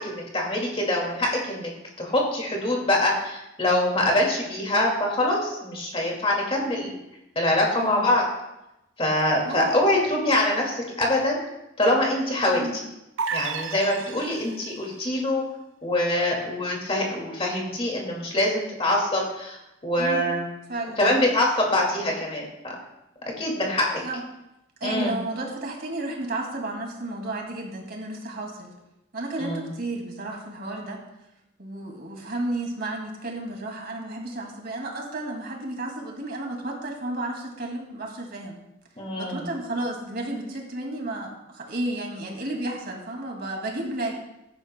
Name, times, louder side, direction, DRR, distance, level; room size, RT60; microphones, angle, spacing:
voice 1, 0.0-1.7 2.0-7.0 7.4-8.2 9.0-11.4 11.8-12.7 13.3-15.4 15.8-19.6 19.8-20.5 21.0-22.7 23.4-24.0 24.8-25.2 29.4-29.7 39.0-39.5, left 1 dB, 30° left, -1 dB, 2.2 m, -24 dB
voice 2, 7.8-8.1 9.5-9.8 12.5-12.8 14.0-14.1 20.0-20.3 20.7-21.0 23.9-24.2 24.8-28.7 29.1-31.0 31.6-38.6 39.2-44.2, right 2 dB, 50° right, 1 dB, 2.3 m, -32 dB
sound 1, 13.2-14.8, right 6 dB, 75° right, 0.6 m, -32 dB
15.5 x 10.5 x 2.2 m, 0.91 s
head